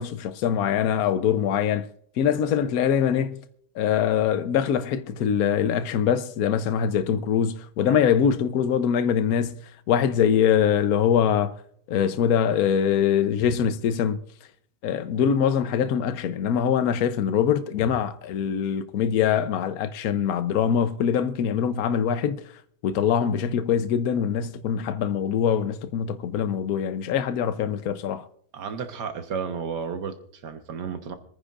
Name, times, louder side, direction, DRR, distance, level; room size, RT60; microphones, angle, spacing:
voice 1, 0.0-1.9 2.2-3.4 3.8-9.6 9.9-11.5 11.9-14.2 14.8-22.4 22.8-28.3, left 8 dB, 65° left, 1.1 m, -23 dB
voice 2, 28.5-31.1, right 6 dB, 80° right, 1.8 m, -33 dB
25.5 x 9.8 x 2.5 m
omnidirectional pair, 1.8 m